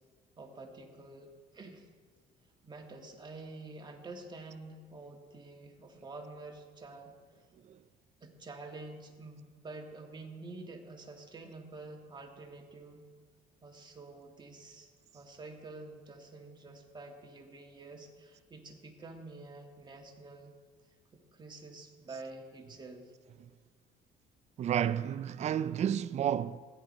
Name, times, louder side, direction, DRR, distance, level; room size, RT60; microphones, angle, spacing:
voice 1, 0.4-1.9 2.6-7.1 8.2-13.1 13.6-20.5 21.1-23.1, right 3 dB, 25° right, 1.7 m, -48 dB
voice 2, 24.6-26.6, right 9 dB, 40° right, 0.4 m, -31 dB
15.5 x 10.5 x 4.2 m
cardioid pair, 110°, 17 cm